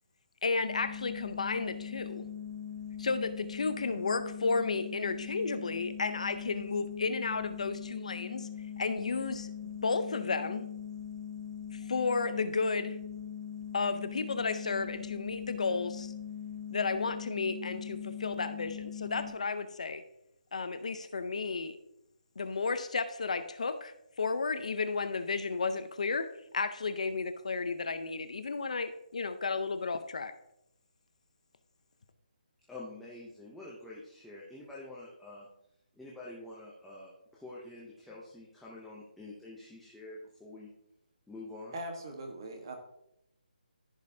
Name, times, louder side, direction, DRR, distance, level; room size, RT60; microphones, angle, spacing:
voice 1, 0.4-2.3 3.0-8.5 8.8-10.7 11.7-13.0 13.7-16.1 16.7-20.0 20.5-21.8 22.4-26.3 26.5-30.3, left 4 dB, 45° left, 10 dB, 0.6 m, -33 dB
sound 1, 0.6-19.3, left 8 dB, 50° right, 1.6 m, -41 dB
voice 2, 32.7-35.5 36.0-40.7 41.3-41.8, left 2 dB, ahead, -6 dB, 0.5 m, -47 dB
voice 3, 41.7-42.8, right 1 dB, 30° right, 4 dB, 1.2 m, -40 dB
14.5 x 5.2 x 2.7 m, 0.80 s
hypercardioid pair, 175°, 5 cm